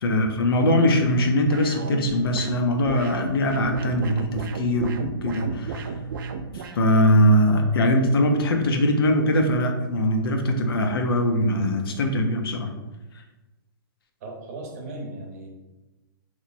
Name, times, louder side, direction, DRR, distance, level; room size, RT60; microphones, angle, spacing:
voice 1, 0.0-5.9 6.5-12.7, left 1 dB, 80° left, 4 dB, 0.6 m, -21 dB
sound 1, 1.5-6.8, right 4 dB, 60° right, 0.4 m, -33 dB
voice 2, 14.2-15.5, right 2 dB, 40° right, 1 dB, 0.8 m, -37 dB
3.0 x 2.1 x 4.0 m, 1.1 s
hypercardioid pair, 155°, 12 cm